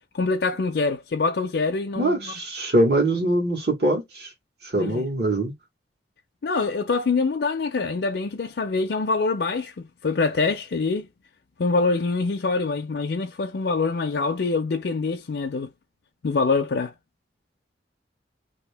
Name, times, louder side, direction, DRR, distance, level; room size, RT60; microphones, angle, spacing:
voice 1, 0.1-2.3 4.8-5.0 6.4-11.1 11.6-15.7 16.2-16.9, left 4 dB, 70° left, 0.5 m, -25 dB
voice 2, 2.0-4.3 4.6-5.5, right 1 dB, 60° right, 1.4 m, -23 dB
2.8 x 2.7 x 3.3 m
head